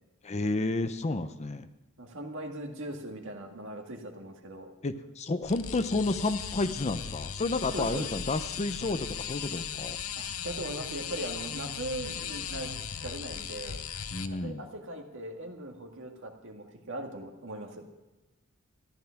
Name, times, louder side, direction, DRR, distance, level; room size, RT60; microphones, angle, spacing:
voice 1, 0.2-1.7 4.8-10.0 14.1-14.6, left 2 dB, 30° left, 11 dB, 0.6 m, -31 dB
voice 2, 2.0-4.7 7.7-8.1 10.2-13.8 14.4-17.9, right 1 dB, 65° right, 3 dB, 2.0 m, -40 dB
sound 1, 5.4-14.3, left 8 dB, 80° left, 0.8 m, -37 dB
14.0 x 11.0 x 5.8 m, 1.0 s
head